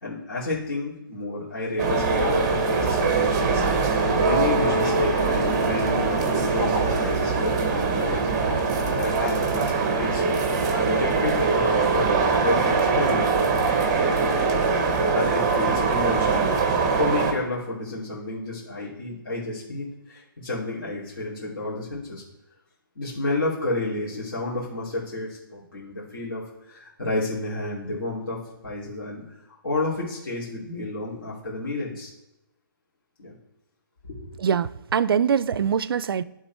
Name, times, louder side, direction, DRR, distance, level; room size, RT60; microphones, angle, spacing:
voice 1, 0.0-3.6 4.2-10.3 10.8-13.2 15.1-16.5 16.9-22.2 23.0-28.4 28.6-29.2 29.6-32.1 33.2-33.3 34.0-34.3, left 2 dB, 75° left, 2.5 m, -31 dB
sound 1, 1.8-17.3, right 4 dB, 15° right, 0.6 m, -22 dB
voice 2, 34.4-36.2, right 7 dB, 90° right, 0.4 m, -23 dB
10.0 x 3.6 x 4.4 m
hypercardioid pair, 175°, 12 cm